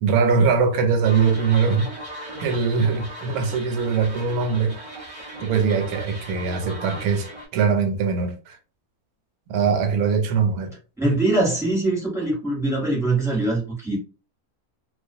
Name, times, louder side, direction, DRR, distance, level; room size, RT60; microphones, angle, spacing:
voice 1, 0.0-1.9 2.4-4.8 5.4-8.6 9.5-10.7, right 5 dB, 85° right, 1.1 m, -21 dB
sound 1, 1.0-7.5, right 1 dB, 30° right, 0.8 m, -38 dB
voice 2, 11.0-14.0, right 2 dB, ahead, 0.8 m, -22 dB
2.3 x 2.2 x 2.5 m
omnidirectional pair, 1.5 m